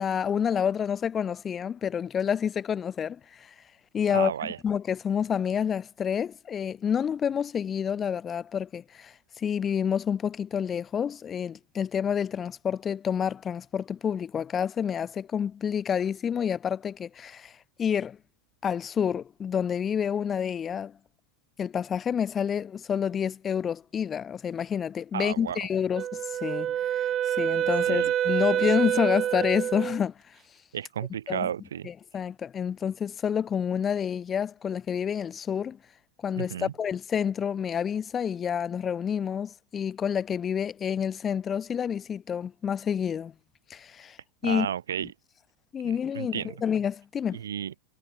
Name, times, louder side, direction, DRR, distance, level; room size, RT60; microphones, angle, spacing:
voice 1, 0.0-3.5 3.9-17.5 17.8-18.2 18.6-20.9 21.6-27.1 27.4-30.1 31.3-31.5 31.8-35.8 36.2-43.3 43.7-44.2 44.4-44.7 45.0-45.1 45.7-47.4, left 8 dB, 25° left, 1.7 m, -28 dB
voice 2, 4.1-4.6 25.1-25.6 27.9-28.1 30.7-31.9 36.3-36.7 44.4-45.1 45.8-46.5 47.3-47.7, right 9 dB, 80° right, 2.1 m, -33 dB
Wind instrument woodwind instrument, 25.9-30.0, right 11 dB, 35° right, 0.8 m, -27 dB
hypercardioid pair, 100°, 0 cm